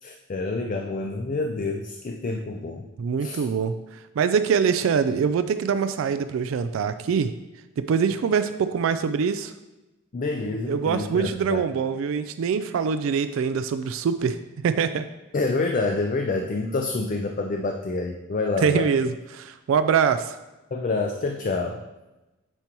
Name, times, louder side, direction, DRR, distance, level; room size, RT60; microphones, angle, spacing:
voice 1, 0.0-2.8 3.2-3.4 10.1-11.7 15.3-18.9 20.7-21.8, left 3 dB, 40° left, 3 dB, 0.4 m, -27 dB
voice 2, 3.0-3.8 4.2-7.3 7.8-9.5 10.7-15.1 18.6-20.4, right 6 dB, 70° right, 11 dB, 0.3 m, -24 dB
8.8 x 4.5 x 2.9 m, 1.0 s
head